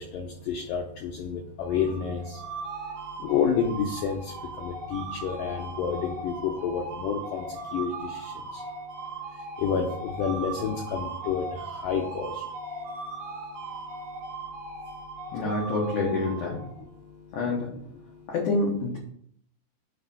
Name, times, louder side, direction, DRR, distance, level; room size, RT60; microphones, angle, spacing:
voice 1, 0.1-2.2 3.2-4.2 4.6-7.4 7.7-7.9 9.6-11.4 11.8-12.3, left 7 dB, 80° left, 1 dB, 2.0 m, -29 dB
sound 1, 1.6-16.9, right 3 dB, 65° right, 3.2 m, -38 dB
voice 2, 15.3-16.6 17.3-17.8 18.3-19.0, left 2 dB, 65° left, -3 dB, 2.2 m, -27 dB
9.6 x 3.4 x 5.4 m, 0.64 s
omnidirectional pair, 4.7 m